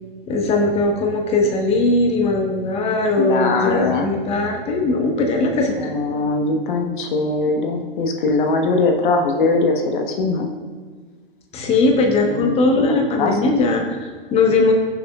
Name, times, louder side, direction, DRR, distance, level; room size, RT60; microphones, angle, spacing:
voice 1, 0.3-5.9 11.5-14.7, left 3 dB, 20° left, 2 dB, 1.2 m, -19 dB
voice 2, 3.2-4.1 5.8-10.5 12.3-13.3, left 3 dB, 60° left, 3 dB, 1.3 m, -21 dB
16.5 x 7.2 x 2.4 m, 1.5 s
hypercardioid pair, 120°, 29 cm